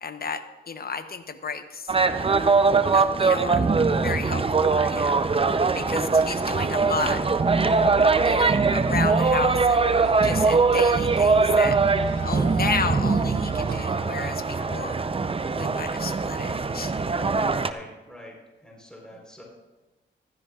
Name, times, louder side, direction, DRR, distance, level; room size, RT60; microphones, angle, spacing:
voice 1, 0.0-1.9 2.9-3.7 4.0-5.3 5.7-7.2 8.2-9.9 10.2-11.8 12.2-15.0 15.5-16.9, left 5 dB, 50° left, 10 dB, 0.9 m, -32 dB
sound 1, 0.6-6.6 11.0-15.8, left 2 dB, 80° left, 4.5 m, -48 dB
sound 2, 1.9-17.7, right 4 dB, 30° right, 0.6 m, -22 dB
sound 3, 7.3-13.9, right 9 dB, 85° right, 0.4 m, -35 dB
voice 2, 14.5-14.8 17.5-19.4, equal, 5° left, -2 dB, 3.8 m, -45 dB
15.5 x 13.0 x 2.4 m, 1.1 s
cardioid pair, 60°, 20 cm